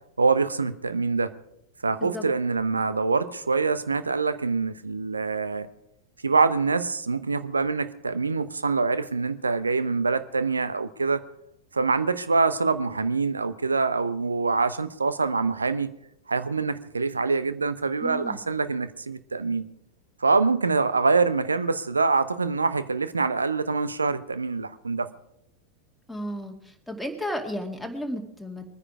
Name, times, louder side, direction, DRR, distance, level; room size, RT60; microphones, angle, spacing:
voice 1, 0.2-1.3 1.8-5.7 6.2-11.2 11.7-15.9 16.3-19.6 20.2-25.1, right 4 dB, 75° right, 13 dB, 0.9 m, -25 dB
voice 2, 18.0-18.4 26.1-26.5 26.9-28.6, equal, ahead, 2 dB, 2.3 m, -33 dB
22.5 x 9.9 x 4.9 m, 0.78 s
figure-of-eight pair, 90°, 0 cm